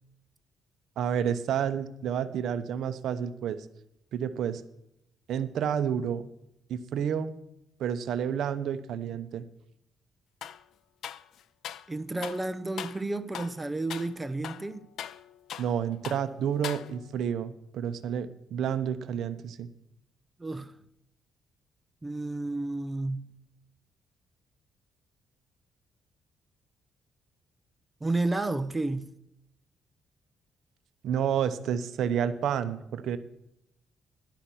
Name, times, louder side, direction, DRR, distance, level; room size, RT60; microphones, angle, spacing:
voice 1, 1.0-3.7 4.1-4.6 5.3-6.2 6.7-7.3 7.8-9.4 15.6-19.7 31.0-33.2, right 8 dB, 75° right, 0.7 m, -30 dB
sound 1, 10.4-10.6 11.0-11.9 12.2-12.4 12.8-13.0 13.3-13.6 13.9-14.1 14.4-15.8 16.0-16.3 16.6-17.2, left 10 dB, 70° left, 0.5 m, -40 dB
voice 2, 11.9-14.9 20.4-20.7 22.0-23.3 28.0-29.1, right 2 dB, 15° right, 0.8 m, -31 dB
11.5 x 5.9 x 8.4 m
cardioid pair, 90°, 0 cm